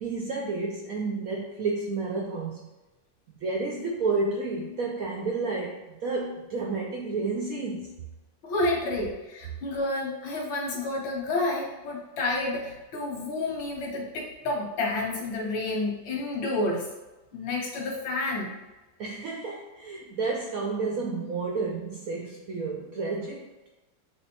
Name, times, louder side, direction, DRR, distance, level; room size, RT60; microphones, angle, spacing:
voice 1, 0.0-2.7 3.3-7.9 19.0-23.7, right 3 dB, 75° right, -1 dB, 0.8 m, -31 dB
voice 2, 8.4-16.9 17.3-18.5, left 2 dB, 80° left, -2 dB, 1.9 m, -30 dB
6.1 x 3.0 x 2.8 m, 1.1 s
omnidirectional pair, 2.1 m